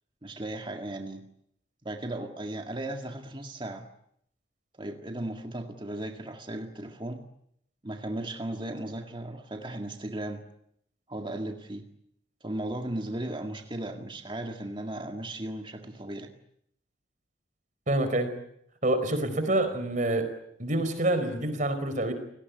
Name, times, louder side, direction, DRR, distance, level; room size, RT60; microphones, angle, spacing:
voice 1, 0.2-1.3 1.8-3.9 4.8-7.2 7.8-10.4 11.1-11.9 12.4-16.3, right 1 dB, 25° right, 4 dB, 1.9 m, -36 dB
voice 2, 17.9-18.3 18.8-20.3 20.6-22.1, right 1 dB, 40° right, 10 dB, 4.6 m, -27 dB
29.5 x 19.0 x 9.5 m, 0.73 s
head